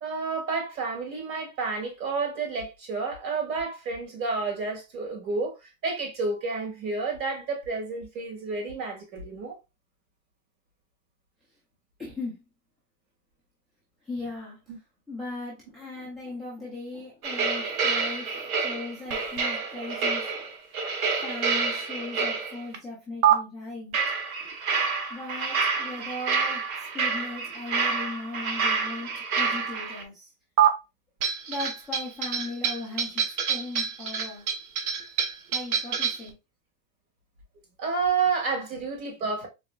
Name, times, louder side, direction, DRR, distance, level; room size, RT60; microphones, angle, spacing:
voice 1, 0.0-5.5 5.8-9.6 14.7-14.8 37.8-39.5, right 4 dB, 85° right, 2.4 m, -30 dB
voice 2, 12.0-12.4 14.0-14.6 15.1-20.5 21.2-24.0 25.1-26.6 26.9-30.3 31.5-34.4 35.5-36.4, left 2 dB, ahead, 0.4 m, -38 dB
sound 1, 17.2-22.8 23.2-23.3 23.9-30.0 30.6-30.7 31.2-36.3, right 6 dB, 60° right, 1.1 m, -27 dB
4.0 x 3.4 x 2.3 m
supercardioid pair, 145°, 49 cm